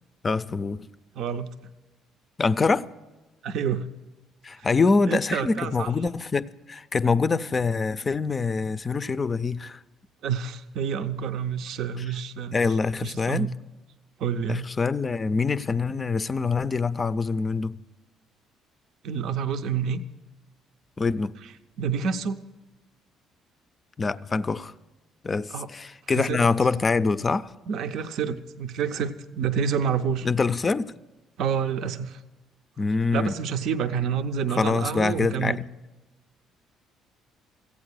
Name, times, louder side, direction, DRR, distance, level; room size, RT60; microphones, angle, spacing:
voice 1, 0.2-0.9 2.4-2.9 4.4-9.8 12.5-13.5 14.5-17.8 21.0-21.4 24.0-24.7 25.2-27.5 30.2-30.9 32.8-33.4 34.6-35.6, left 4 dB, 35° left, 0.4 m, -25 dB
voice 2, 1.1-1.5 3.4-3.9 4.6-4.7 5.1-5.9 10.2-12.6 13.0-13.6 14.2-14.7 19.0-20.0 21.8-22.4 25.5-25.7 26.1-26.5 27.7-30.3 31.4-32.2 33.1-35.6, right 7 dB, 65° right, 0.5 m, -28 dB
15.0 x 8.6 x 6.4 m
hypercardioid pair, 55°, 0 cm